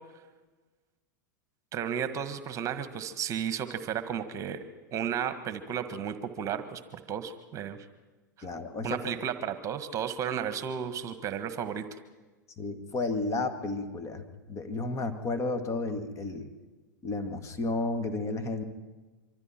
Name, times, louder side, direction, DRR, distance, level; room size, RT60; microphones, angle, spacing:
voice 1, 1.7-4.6 4.9-7.8 8.8-11.9, right 8 dB, 30° right, 10 dB, 1.6 m, -33 dB
voice 2, 8.4-9.2 12.6-16.5 17.0-18.6, left 2 dB, 30° left, 10 dB, 2.1 m, -32 dB
25.5 x 25.0 x 4.5 m, 1.2 s
figure-of-eight pair, 90°, 10 cm